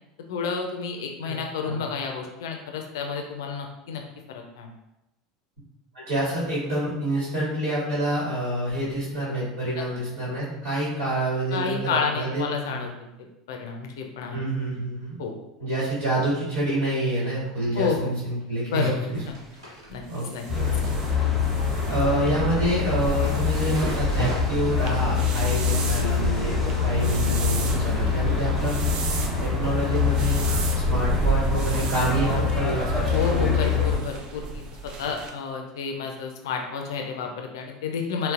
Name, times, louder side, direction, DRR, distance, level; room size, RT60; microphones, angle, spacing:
voice 1, 0.3-4.0 4.3-4.7 11.5-12.9 13.5-14.4 15.2-15.3 17.7-18.1 18.7-19.3 19.9-20.0 20.3-20.4 33.1-38.3, left 6 dB, 65° left, 3 dB, 0.4 m, -30 dB
voice 2, 5.9-12.9 14.3-15.1 15.6-19.2 20.1-20.3 20.5-20.8 21.9-28.7 29.4-30.5 30.9-33.7, right 1 dB, 60° right, -9 dB, 1.4 m, -27 dB
sound 1, 18.4-18.7 19.0-28.2 28.5-29.0 29.3-30.1 30.4-30.5 31.5-31.8 32.0-32.1 32.5-32.6 34.2-34.3 35.0-35.1, right 1 dB, 80° right, 1.0 m, -40 dB
sound 2, 19.1-35.3, right 5 dB, 40° right, 0.3 m, -37 dB
sound 3, 20.5-34.0, left 4 dB, 5° right, 0.9 m, -24 dB
3.9 x 2.0 x 2.4 m, 0.92 s
figure-of-eight pair, 75°, 2 cm